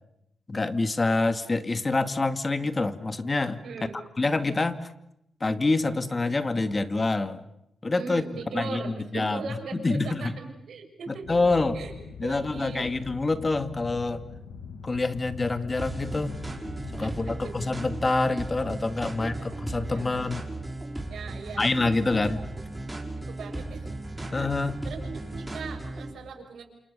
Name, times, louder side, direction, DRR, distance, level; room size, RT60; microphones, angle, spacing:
voice 1, 0.5-3.6 4.2-4.9 5.4-7.4 7.8-8.2 8.5-9.4 9.7-10.3 11.1-11.8 12.2-14.2 14.8-16.4 16.9-20.5 21.6-22.4 24.3-24.8, left 3 dB, 30° left, 10 dB, 2.3 m, -26 dB
voice 2, 3.6-4.0 7.8-11.3 11.7-11.9 12.2-12.9 14.0-14.1 17.0-17.5 19.0-19.5 19.9-20.0 21.1-21.7 22.3-22.4 23.2-23.9 24.2-24.4 24.8-26.6, right 5 dB, 75° right, 2 dB, 6.9 m, -39 dB
sound 1, 11.2-17.4, left 6 dB, 85° left, 6.0 m, -42 dB
sound 2, 15.8-26.1, right 2 dB, 15° right, 5.8 m, -36 dB
28.5 x 28.0 x 6.9 m, 0.81 s
cardioid pair, 70°, 0 cm